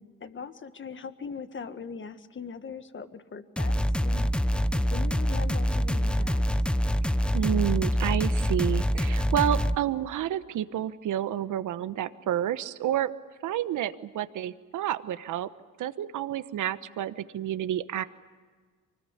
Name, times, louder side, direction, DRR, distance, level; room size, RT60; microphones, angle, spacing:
voice 1, 0.2-4.3 4.7-6.4, left 5 dB, 35° left, 10 dB, 1.7 m, -40 dB
sound 1, 3.6-9.8, equal, 5° left, 0.8 m, -25 dB
voice 2, 7.3-13.1 13.4-15.5 15.8-18.0, right 11 dB, 70° right, 13 dB, 1.1 m, -29 dB
25.0 x 20.5 x 9.8 m, 1.5 s
supercardioid pair, 75°, 32 cm